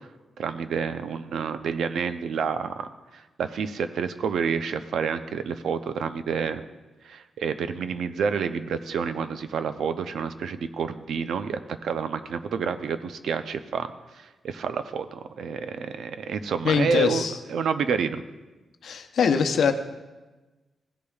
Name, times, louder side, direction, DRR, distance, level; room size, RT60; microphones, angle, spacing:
voice 1, 0.4-6.6 7.0-13.9 14.1-17.2 17.5-18.2, right 6 dB, 75° right, 10 dB, 0.5 m, -29 dB
voice 2, 16.6-17.4 18.8-19.7, left 6 dB, 70° left, 7 dB, 0.7 m, -22 dB
15.5 x 8.4 x 2.4 m, 1.2 s
cardioid pair, 115°, 0 cm